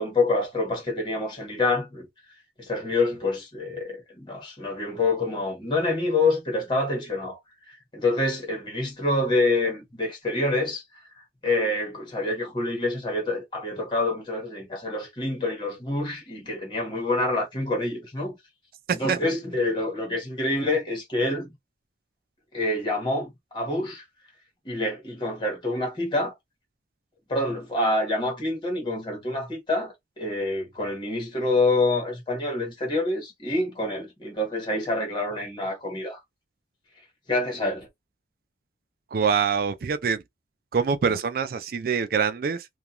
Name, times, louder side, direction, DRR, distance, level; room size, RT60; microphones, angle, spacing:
voice 1, 0.0-2.1 2.6-7.4 7.7-10.8 11.4-18.4 18.9-21.5 22.5-24.0 24.6-26.3 27.3-36.2 37.3-37.9, left 2 dB, 25° left, 1.2 m, -27 dB
voice 2, 39.1-40.2 40.7-42.7, right 6 dB, 55° right, 0.4 m, -24 dB
2.4 x 2.2 x 2.9 m
head